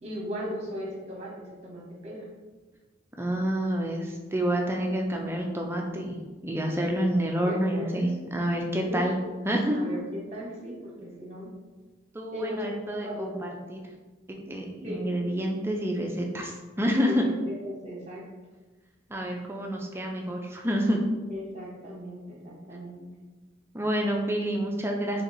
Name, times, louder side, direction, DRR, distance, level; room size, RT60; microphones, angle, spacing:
voice 1, 0.0-2.3 7.4-8.2 8.9-9.1 9.7-11.5 12.3-12.7 13.0-13.5 14.8-15.0 17.0-18.3 21.3-23.1, equal, 30° right, -3 dB, 0.9 m, -37 dB
voice 2, 3.2-6.2 6.4-9.2 9.4-9.8 12.1-13.8 14.3-17.2 19.1-21.0 23.7-25.2, equal, 10° right, 0 dB, 0.4 m, -28 dB
3.4 x 2.8 x 4.0 m, 1.2 s
head